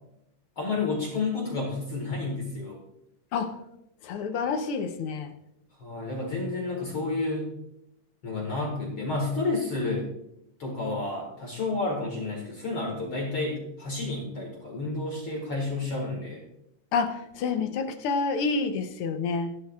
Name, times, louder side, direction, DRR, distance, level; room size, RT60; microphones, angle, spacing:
voice 1, 0.6-2.8 5.8-7.5 8.2-10.1 10.6-16.4, left 3 dB, 50° left, -1 dB, 2.4 m, -30 dB
voice 2, 4.0-5.3 16.9-19.5, left 4 dB, 70° left, 8 dB, 1.3 m, -28 dB
14.5 x 12.0 x 2.4 m, 0.82 s
omnidirectional pair, 3.3 m